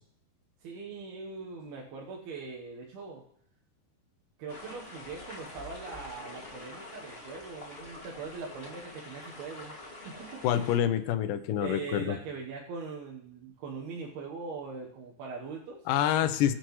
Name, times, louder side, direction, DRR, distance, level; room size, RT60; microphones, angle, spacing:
voice 1, 0.6-3.2 4.4-9.8 10.0-10.4 11.6-15.8 16.2-16.3, right 4 dB, 75° right, -3 dB, 3.1 m, -41 dB
sound 1, 4.5-10.8, left 2 dB, 25° left, 1.3 m, -46 dB
voice 2, 10.4-12.2 15.9-16.5, left 10 dB, 75° left, 9 dB, 2.2 m, -27 dB
22.5 x 7.7 x 3.2 m, 0.69 s
omnidirectional pair, 4.6 m